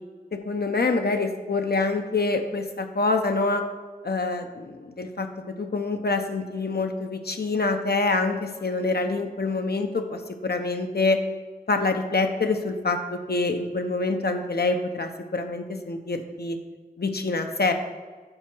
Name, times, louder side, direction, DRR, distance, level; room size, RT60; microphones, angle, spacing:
voice 1, 0.3-3.6 4.0-5.3 5.6-11.2 11.7-16.6 17.0-17.7, left 3 dB, 75° left, 6 dB, 0.7 m, -26 dB
7.8 x 4.5 x 6.0 m, 1.5 s
wide cardioid pair, 55°, 17 cm